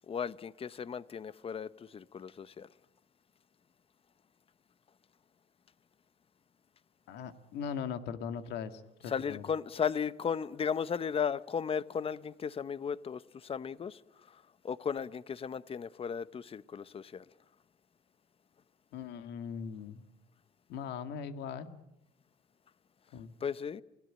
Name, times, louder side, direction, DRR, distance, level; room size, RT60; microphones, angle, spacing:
voice 1, 0.1-2.7 9.1-14.0 14.3-14.4 14.6-17.2 23.4-23.8, left 7 dB, 35° left, 0.9 m, -35 dB
voice 2, 7.1-9.4 18.9-20.0 20.7-21.8 23.1-23.3, left 7 dB, 80° left, 2.2 m, -40 dB
28.5 x 18.5 x 8.8 m
cardioid pair, 110°, 17 cm